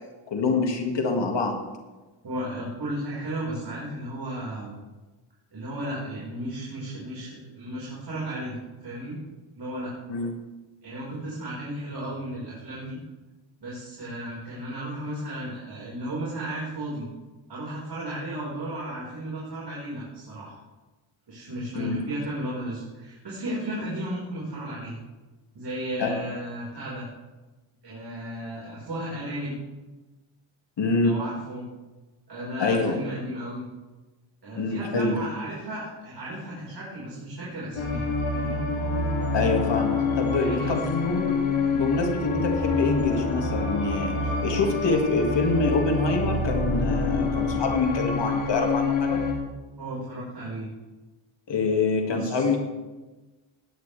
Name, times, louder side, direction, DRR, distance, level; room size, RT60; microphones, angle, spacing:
voice 1, 0.3-1.6 10.1-10.3 21.7-22.0 26.0-26.1 30.8-31.2 32.6-32.9 34.5-35.2 39.3-44.1 44.4-49.2 51.5-52.6, left 3 dB, 60° left, 2 dB, 2.2 m, -25 dB
voice 2, 2.2-4.8 5.5-9.2 9.5-9.9 10.8-13.0 13.6-17.1 17.5-20.6 21.3-25.0 25.5-27.0 27.8-29.5 31.0-31.6 32.3-33.6 34.4-38.0 38.3-38.6 40.4-40.9 49.8-50.7 52.0-52.5, right 1 dB, 55° right, -6 dB, 5.2 m, -34 dB
sound 1, 37.8-49.3, left 3 dB, 80° left, 3.1 m, -26 dB
19.5 x 9.6 x 3.4 m, 1.2 s
cardioid pair, 85°, 48 cm